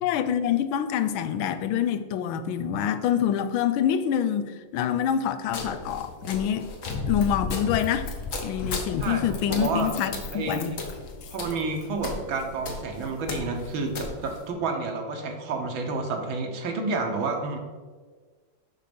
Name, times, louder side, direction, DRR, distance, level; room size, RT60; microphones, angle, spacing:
voice 1, 0.0-6.7 7.1-8.1 8.4-10.7, left 9 dB, 85° left, 1.4 m, -26 dB
sound 1, 5.5-14.5, left 3 dB, 50° left, 1.2 m, -38 dB
Run, 6.8-12.1 12.7-12.8, left 3 dB, 70° left, 1.5 m, -35 dB
voice 2, 9.0-9.9 10.3-10.8 11.3-17.6, right 3 dB, 75° right, 1.8 m, -30 dB
6.5 x 5.8 x 5.1 m
omnidirectional pair, 2.2 m